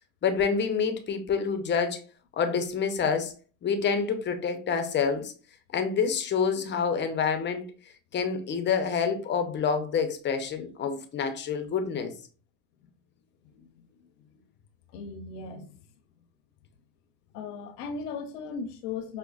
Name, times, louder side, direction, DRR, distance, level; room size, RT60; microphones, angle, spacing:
voice 1, 0.2-2.0 2.3-3.3 3.6-5.3 5.7-7.6 8.1-12.1, left 6 dB, 25° left, 0.5 m, -27 dB
voice 2, 13.4-14.4 14.9-15.8 17.3-19.2, left 5 dB, 85° left, 0.8 m, -38 dB
5.3 x 2.1 x 2.3 m
supercardioid pair, 105°, 46 cm